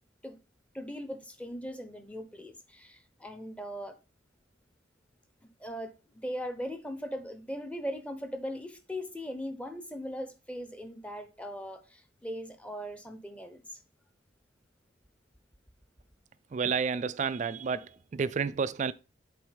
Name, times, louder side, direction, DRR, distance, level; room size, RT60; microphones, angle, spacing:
voice 1, 0.7-4.0 5.6-13.8, equal, 5° left, 0.9 m, -39 dB
voice 2, 16.5-18.9, right 5 dB, 40° right, 0.3 m, -30 dB
7.7 x 4.0 x 5.2 m
head